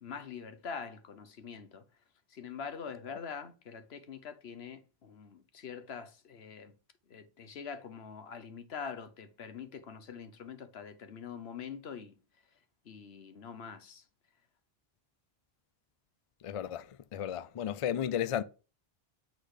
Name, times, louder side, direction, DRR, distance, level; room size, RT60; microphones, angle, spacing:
voice 1, 0.0-1.8 2.3-6.7 7.1-12.1 12.8-14.0, left 6 dB, 80° left, 1.2 m, -44 dB
voice 2, 16.4-16.8 17.1-18.4, left 10 dB, 55° left, 0.3 m, -33 dB
8.3 x 4.1 x 4.9 m
omnidirectional pair, 1.1 m